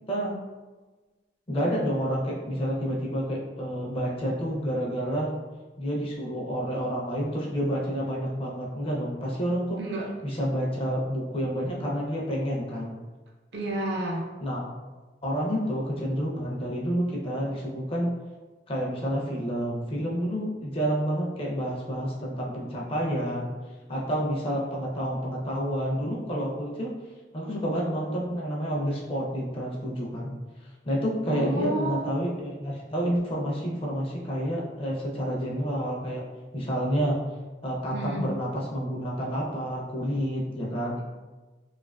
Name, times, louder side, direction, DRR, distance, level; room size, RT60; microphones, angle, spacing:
voice 1, 1.5-5.3 5.8-9.8 10.2-12.9 14.4-14.7 15.2-18.1 18.7-23.5 23.9-26.9 27.3-30.3 30.8-36.2 36.5-37.2 37.6-41.0, equal, 30° left, -4 dB, 0.5 m, -29 dB
voice 2, 9.8-10.1 13.5-14.3 31.3-32.0 37.9-38.3, right 1 dB, 65° right, -2 dB, 0.5 m, -30 dB
2.5 x 2.3 x 2.2 m, 1.3 s
head